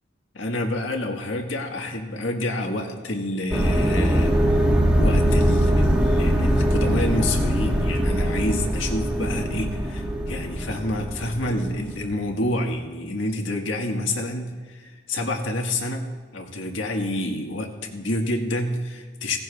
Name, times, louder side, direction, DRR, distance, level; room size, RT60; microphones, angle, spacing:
voice 1, 0.3-19.4, left 1 dB, 85° left, 2 dB, 1.6 m, -28 dB
sound 1, 3.5-12.1, equal, 5° right, 1.4 m, -22 dB
17.0 x 16.5 x 2.4 m, 1.5 s
head